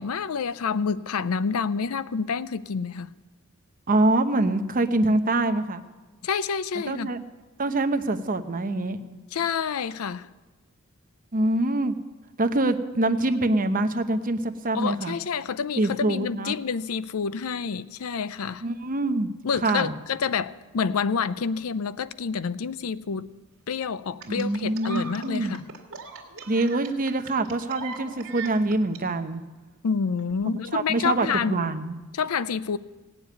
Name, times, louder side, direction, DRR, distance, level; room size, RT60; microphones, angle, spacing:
voice 1, 0.0-3.1 6.2-7.1 9.3-10.3 14.7-18.7 19.4-23.3 23.7-25.7 29.8-31.7 32.1-32.8, left 6 dB, 80° left, 0.5 m, -28 dB
voice 2, 3.9-5.8 6.9-7.2 7.6-9.2 11.3-11.9 12.4-15.2 15.8-16.5 18.6-19.3 19.6-19.9 24.3-25.5 26.5-29.4 30.4-32.0, right 2 dB, 40° right, 0.8 m, -25 dB
sound 1, 24.2-29.0 30.2-30.3, right 4 dB, 65° right, 2.1 m, -39 dB
17.5 x 7.1 x 9.3 m
head